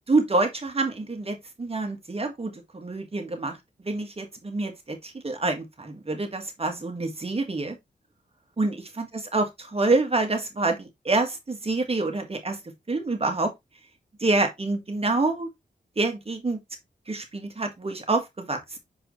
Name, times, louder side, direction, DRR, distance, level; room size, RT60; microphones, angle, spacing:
voice 1, 0.1-3.6 3.8-7.8 8.6-12.6 12.9-13.5 14.2-15.5 16.0-16.6 17.1-18.8, right 3 dB, 35° right, 1.7 m, -27 dB
6.4 x 4.8 x 3.2 m
wide cardioid pair, 75°, 17 cm